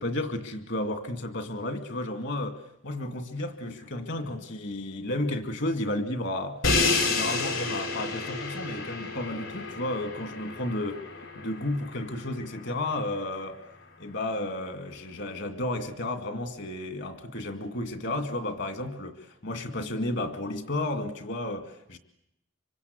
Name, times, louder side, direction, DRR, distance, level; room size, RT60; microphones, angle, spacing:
voice 1, 0.0-6.6 7.0-11.0 11.3-13.6 14.0-22.0, left 1 dB, 60° left, 8 dB, 2.3 m, -32 dB
Crash cymbal, 6.6-12.6, left 3 dB, 80° left, 4.9 m, -30 dB
25.5 x 24.5 x 8.3 m, 0.78 s
head